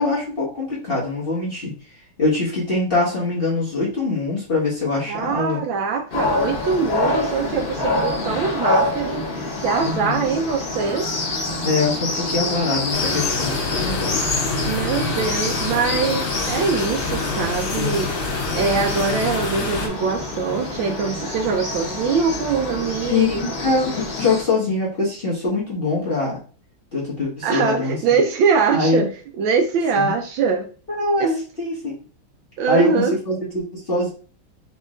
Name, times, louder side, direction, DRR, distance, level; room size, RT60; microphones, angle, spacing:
voice 1, 0.0-1.7 2.2-5.6 9.8-10.2 11.6-14.3 17.8-18.0 23.1-26.4 26.9-28.0 28.7-29.1 29.9-30.1 30.9-31.3 31.6-32.0 32.7-34.1, left 3 dB, 30° left, -5 dB, 1.3 m, -23 dB
voice 2, 5.1-9.3 9.6-11.1 14.6-18.1 18.5-23.4 27.4-29.1 29.4-30.7 31.2-31.4 32.6-33.2, right 5 dB, 75° right, 4 dB, 1.2 m, -22 dB
sound 1, 6.1-24.4, left 2 dB, 85° left, 0.4 m, -26 dB
sound 2, 12.9-19.9, left 3 dB, 65° left, 1.7 m, -27 dB
4.2 x 2.9 x 3.7 m, 0.38 s
omnidirectional pair, 2.4 m